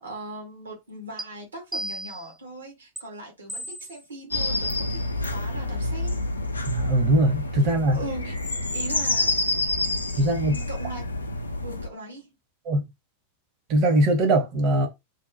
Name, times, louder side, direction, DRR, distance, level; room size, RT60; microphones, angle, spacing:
voice 1, 0.0-5.0 5.3-6.2 7.9-9.4 10.1-11.1 11.6-12.3, right 2 dB, 70° right, 1.2 m, -39 dB
sound 1, 1.2-1.3 1.7-2.3 3.0-3.1 3.5-4.0 4.7-4.8 5.2-5.4, right 1 dB, 10° right, 0.6 m, -35 dB
sound 2, 4.3-11.9, left 2 dB, 80° left, 0.4 m, -28 dB
voice 2, 6.7-8.0 10.2-10.6 12.6-12.8 13.7-14.9, right 1 dB, 40° right, 0.9 m, -21 dB
2.7 x 2.1 x 2.7 m
figure-of-eight pair, 90°, 0 cm